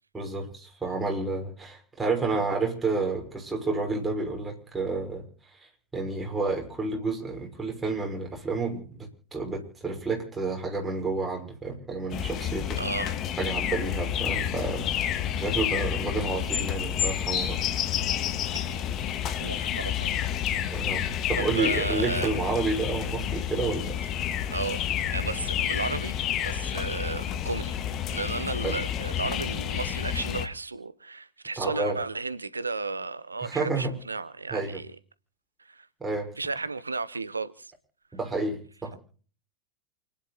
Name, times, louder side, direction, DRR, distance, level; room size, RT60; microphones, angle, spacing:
voice 1, 0.1-5.3 5.5-12.8 13.4-17.6 20.7-21.0 21.3-24.0 28.6-28.8 31.6-32.0 33.4-34.0 34.5-34.8 36.0-36.3 38.1-38.9, right 3 dB, 10° right, 6.0 m, -30 dB
sound 1, 12.1-30.5, left 10 dB, 35° left, 1.8 m, -29 dB
voice 2, 12.8-13.1 19.4-20.1 21.4-22.3 24.5-27.8 28.1-34.9 35.7-35.9 36.4-37.7, right 4 dB, 80° right, 1.0 m, -33 dB
29.0 x 10.5 x 4.2 m
figure-of-eight pair, 90°, 0 cm